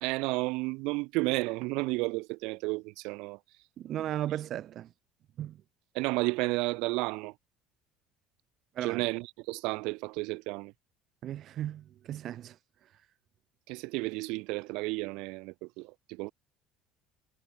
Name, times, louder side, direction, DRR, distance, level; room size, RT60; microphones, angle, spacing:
voice 1, 0.0-3.4 5.9-7.3 8.8-10.7 13.7-16.3, right 25 dB, 70° right, 0.7 m, -32 dB
voice 2, 3.8-4.9 5.4-5.6 8.7-9.0 11.2-12.6, right 12 dB, 55° right, 2.8 m, -36 dB
hypercardioid pair, 75°, 0 cm